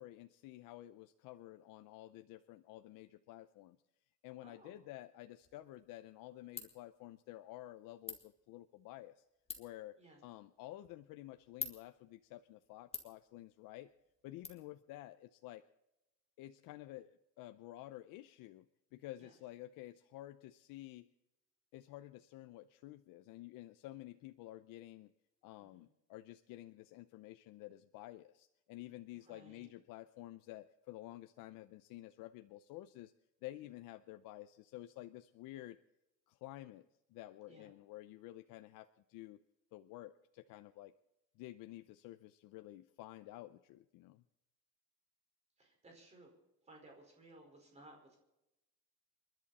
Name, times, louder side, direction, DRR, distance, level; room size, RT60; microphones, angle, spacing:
voice 1, 0.0-3.8 4.2-9.2 9.6-10.0 10.2-13.9 14.2-15.6 16.4-21.1 21.7-25.1 25.4-33.1 33.4-35.8 36.3-39.4 39.7-40.9 41.4-44.2, left 15 dB, 70° left, 9 dB, 0.7 m, -51 dB
voice 2, 4.4-4.8 10.0-10.2 19.2-19.3 25.6-25.8 29.1-29.7 37.5-37.7 45.6-46.3 46.6-48.2, right 2 dB, 20° right, 1 dB, 4.8 m, -60 dB
Ratchet pawl, 5.4-14.5, left 5 dB, 15° left, 1.8 m, -52 dB
29.0 x 11.0 x 4.2 m, 0.92 s
cardioid pair, 175°, 35 cm